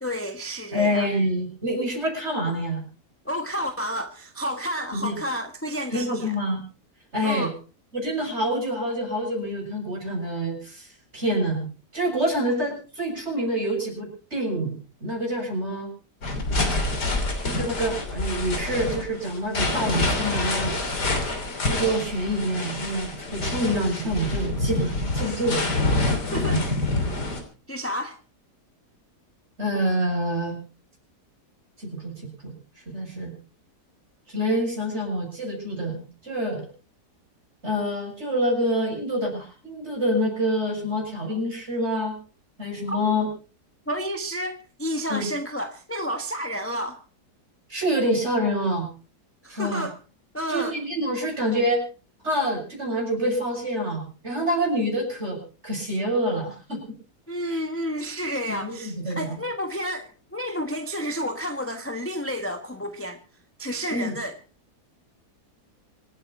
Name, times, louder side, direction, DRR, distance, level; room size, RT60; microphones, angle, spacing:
voice 1, 0.0-1.1 3.2-6.4 7.2-7.5 26.3-26.6 27.7-28.2 42.9-43.0 43.9-47.0 49.4-50.0 50.3-50.8 57.3-63.2 63.6-64.4, equal, 10° left, 6 dB, 1.3 m, -30 dB
voice 2, 0.7-2.8 4.9-5.2 5.9-6.6 7.1-7.5 7.9-11.7 11.9-15.9 17.4-20.8 21.7-25.6 26.5-26.6 29.6-30.6 31.8-32.1 32.4-32.5 32.9-33.3 34.3-36.7 37.6-42.2 42.6-43.3 45.1-45.3 47.7-48.9 49.5-49.9 50.5-51.8 52.2-57.0 57.5-57.6 58.5-59.4 63.9-64.1, equal, 40° right, 0 dB, 7.4 m, -27 dB
sound 1, 16.2-27.4, left 2 dB, 85° left, 3.8 m, -27 dB
26.0 x 9.2 x 4.4 m, 0.36 s
omnidirectional pair, 1.7 m